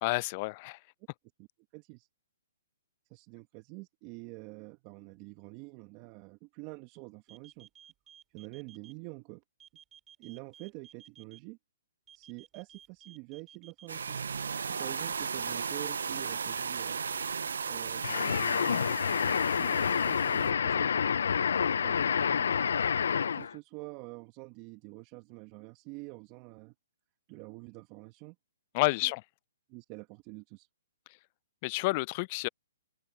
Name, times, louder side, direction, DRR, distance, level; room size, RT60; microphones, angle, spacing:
voice 1, 0.0-0.8 28.7-29.2 31.6-32.5, left 24 dB, 35° left, 0.4 m, -29 dB
voice 2, 1.7-2.1 3.1-7.7 8.3-9.4 10.2-11.6 12.1-14.2 14.6-17.0 17.6-18.9 19.5-20.9 21.8-22.6 23.3-26.7 27.3-28.3 29.0-29.1 29.7-30.7, right 26 dB, 30° right, 1.5 m, -47 dB
sound 1, 7.3-8.9 9.6-11.4 12.1-13.9, right 9 dB, 15° right, 3.5 m, -55 dB
sound 2, 13.9-20.5, right 6 dB, 75° right, 0.8 m, -36 dB
sound 3, 18.0-23.5, left 7 dB, 70° left, 0.8 m, -28 dB
open air
hypercardioid pair, 140°, 0 cm